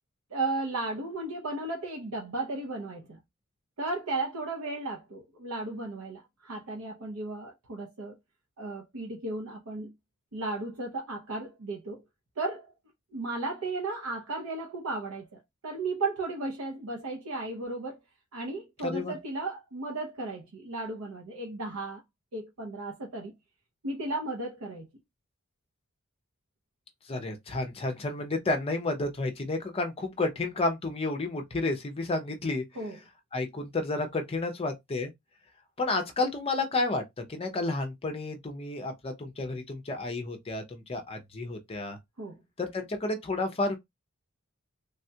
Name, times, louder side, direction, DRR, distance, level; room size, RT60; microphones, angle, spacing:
voice 1, 0.3-3.2 3.8-8.1 8.6-9.9 10.3-12.0 12.4-12.7 13.1-18.0 18.3-22.0 22.3-23.3 23.8-24.9 32.8-33.0 42.2-42.4, right 2 dB, 80° right, 0.7 m, -35 dB
voice 2, 18.8-19.1 27.1-32.6 33.3-35.1 35.8-37.0 37.3-42.0 42.6-43.8, left 2 dB, 25° left, 0.5 m, -31 dB
3.4 x 2.2 x 2.7 m
head